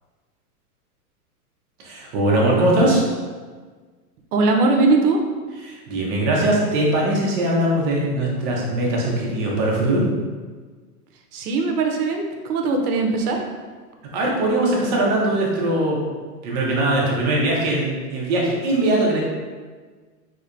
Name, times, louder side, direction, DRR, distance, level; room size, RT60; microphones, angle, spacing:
voice 1, 1.8-3.0 5.6-10.0 14.1-16.0 16.4-19.2, right 1 dB, 25° right, -3 dB, 0.6 m, -21 dB
voice 2, 4.3-5.2 11.3-13.4, right 3 dB, 75° right, 3 dB, 0.7 m, -20 dB
3.2 x 2.8 x 2.5 m, 1.5 s
hypercardioid pair, 145°, 46 cm